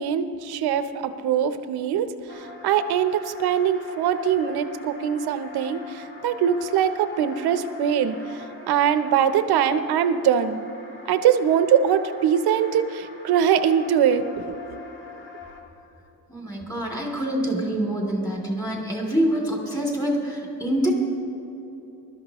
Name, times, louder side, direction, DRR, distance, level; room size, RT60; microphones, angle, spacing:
voice 1, 0.0-2.1 2.3-10.6 11.1-14.2, right 8 dB, 80° right, 10 dB, 0.8 m, -22 dB
sound 1, 2.3-15.6, left 4 dB, 30° left, 1.6 m, -43 dB
voice 2, 16.3-20.9, right 1 dB, 10° left, -1 dB, 2.7 m, -26 dB
21.5 x 13.0 x 3.0 m, 2.9 s
cardioid pair, 150°, 38 cm